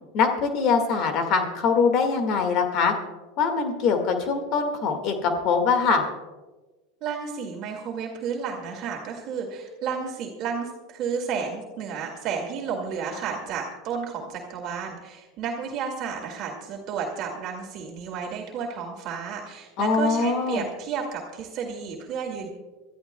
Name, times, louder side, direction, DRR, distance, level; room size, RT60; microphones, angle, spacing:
voice 1, 0.1-2.9 3.4-6.0 19.8-20.7, left 5 dB, 50° left, 5 dB, 1.9 m, -23 dB
voice 2, 7.0-22.5, right 6 dB, 50° right, 1 dB, 2.2 m, -32 dB
25.5 x 13.0 x 2.3 m, 1.2 s
supercardioid pair, 120°, 0 cm